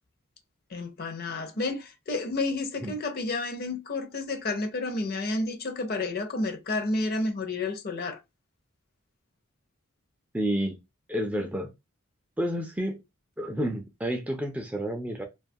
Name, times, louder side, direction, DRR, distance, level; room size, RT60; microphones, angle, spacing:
voice 1, 0.7-8.2, left 2 dB, 45° left, 0.6 m, -30 dB
voice 2, 10.3-10.8 11.1-11.7 12.4-13.0 13.4-15.3, equal, 5° right, 0.3 m, -30 dB
2.4 x 2.3 x 2.6 m
head